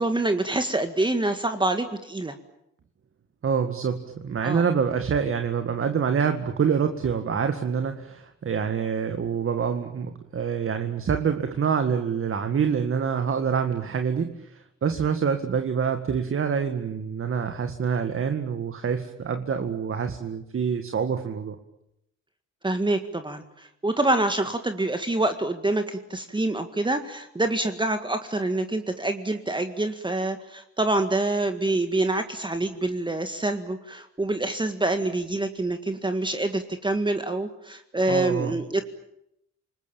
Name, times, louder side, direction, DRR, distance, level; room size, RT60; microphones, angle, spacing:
voice 1, 0.0-2.4 4.4-4.6 22.6-38.8, right 2 dB, 15° right, 7 dB, 1.9 m, -26 dB
voice 2, 3.4-21.6 38.1-38.6, right 6 dB, 45° right, 7 dB, 2.0 m, -26 dB
28.5 x 20.0 x 9.1 m, 0.80 s
cardioid pair, 90°, 30 cm